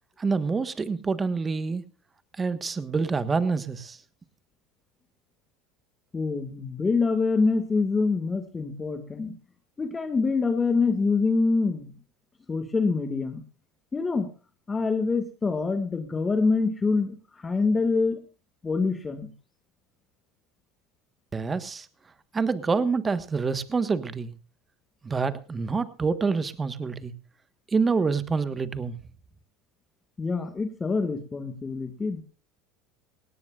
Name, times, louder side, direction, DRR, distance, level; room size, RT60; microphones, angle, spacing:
voice 1, 0.2-1.8 2.4-4.0 21.3-21.9 22.3-24.3 25.0-27.1 27.7-29.0, right 4 dB, 20° right, 13 dB, 1.3 m, -27 dB
voice 2, 6.1-9.3 9.8-11.9 12.5-13.4 13.9-14.3 14.7-17.2 17.4-18.2 18.6-19.3 30.2-32.2, left 4 dB, 20° left, 8 dB, 1.8 m, -25 dB
18.0 x 17.5 x 2.4 m, 0.36 s
supercardioid pair, 100°, 0 cm